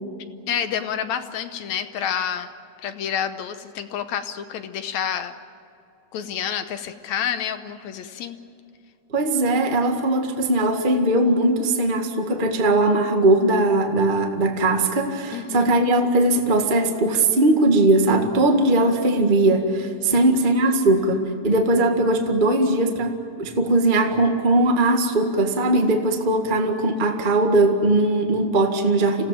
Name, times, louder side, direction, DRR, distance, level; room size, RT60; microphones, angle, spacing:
voice 1, 0.5-2.5 2.8-5.3 6.1-8.4 15.3-15.9 20.1-20.2 20.6-21.0, left 8 dB, 70° left, 9 dB, 2.0 m, -29 dB
voice 2, 9.1-29.3, right 2 dB, 20° right, 4 dB, 1.3 m, -20 dB
27.0 x 17.0 x 9.0 m, 2.6 s
omnidirectional pair, 3.6 m